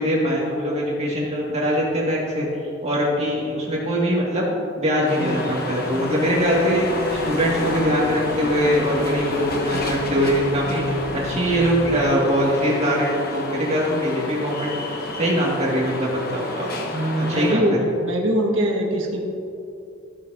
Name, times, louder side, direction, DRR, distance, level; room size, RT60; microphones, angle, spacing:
voice 1, 0.0-2.5 2.8-4.5 4.8-10.8 11.1-14.8 15.1-16.7 17.2-17.7, equal, 35° right, -4 dB, 2.0 m, -22 dB
sound 1, 5.1-17.5, left 2 dB, 50° left, 1.0 m, -30 dB
voice 2, 5.2-5.6 16.9-19.2, right 1 dB, 70° right, -1 dB, 1.5 m, -23 dB
Race car auto racing / Alarm, 5.8-12.0, left 1 dB, 80° left, 1.3 m, -33 dB
14.5 x 6.5 x 2.7 m, 2.7 s
head